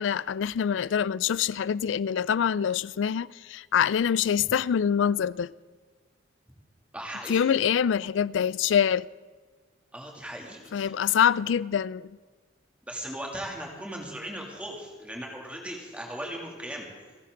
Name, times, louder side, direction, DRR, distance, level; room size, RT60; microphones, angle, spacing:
voice 1, 0.0-5.5 7.3-9.1 10.7-12.1, left 8 dB, 80° left, 0.4 m, -25 dB
voice 2, 6.9-7.5 9.9-10.9 12.9-16.9, right 1 dB, 5° right, 2.6 m, -38 dB
29.5 x 11.0 x 3.8 m
head